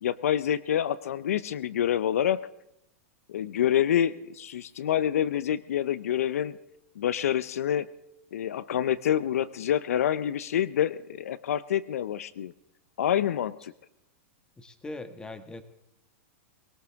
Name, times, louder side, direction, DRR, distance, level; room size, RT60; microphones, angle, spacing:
voice 1, 0.0-2.4 3.3-6.6 7.0-7.9 8.3-12.5 13.0-13.7, left 10 dB, 80° left, 17 dB, 0.6 m, -27 dB
voice 2, 14.6-15.6, left 2 dB, 10° left, 9 dB, 1.5 m, -40 dB
21.5 x 18.0 x 3.5 m, 0.86 s
hypercardioid pair, 120°, 8 cm